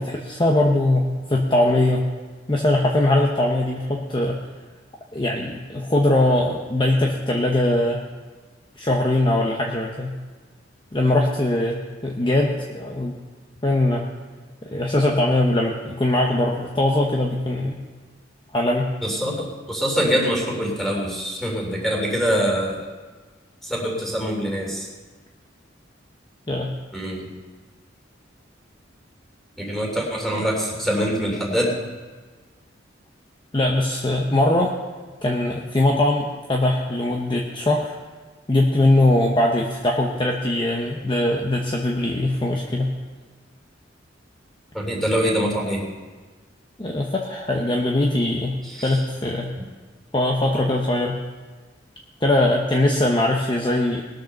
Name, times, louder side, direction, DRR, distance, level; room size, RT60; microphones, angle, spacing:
voice 1, 0.0-2.0 2.5-4.4 5.1-8.0 8.8-10.1 10.9-13.2 13.6-14.1 14.6-17.8 18.5-18.9 26.5-26.7 33.5-34.7 35.2-38.0 38.5-42.9 46.8-48.6 48.8-49.5 50.1-51.2 52.2-54.0, left 1 dB, 25° left, 0 dB, 0.9 m, -21 dB
voice 2, 19.0-22.9 23.6-24.9 26.9-27.3 29.6-31.7 44.7-45.8 48.6-49.0, equal, ahead, -1 dB, 2.9 m, -24 dB
19.5 x 6.6 x 6.5 m, 1.4 s
head